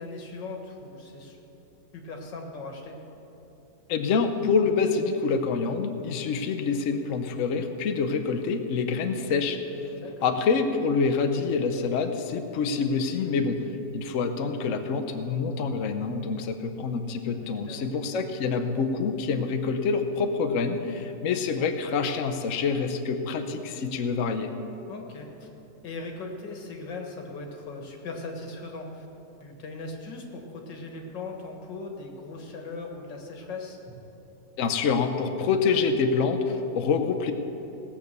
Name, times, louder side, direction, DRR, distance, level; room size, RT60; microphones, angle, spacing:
voice 1, 0.0-1.4 1.9-3.0 10.0-10.3 17.4-17.9 24.9-25.5 25.8-29.1 29.4-34.0, left 3 dB, 85° left, 2 dB, 2.2 m, -39 dB
voice 2, 3.9-9.6 10.2-13.6 13.9-24.5 34.6-37.3, left 5 dB, 55° left, 6 dB, 1.0 m, -26 dB
17.5 x 7.4 x 6.7 m, 2.9 s
omnidirectional pair, 1.9 m